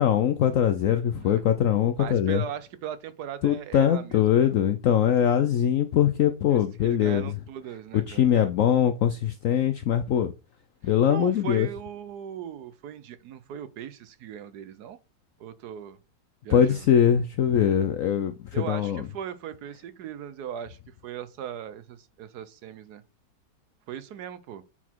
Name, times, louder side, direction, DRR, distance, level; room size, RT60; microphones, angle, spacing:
voice 1, 0.0-2.4 3.4-7.3 8.1-10.3 10.8-11.7 16.5-18.3 18.7-19.0, left 9 dB, 75° left, 0.7 m, -22 dB
voice 2, 2.0-4.6 6.5-8.3 10.8-15.0 15.4-16.0 16.4-16.9 18.5-23.0 23.9-24.6, right 9 dB, 70° right, 1.1 m, -38 dB
8.1 x 4.0 x 4.5 m
omnidirectional pair, 1.9 m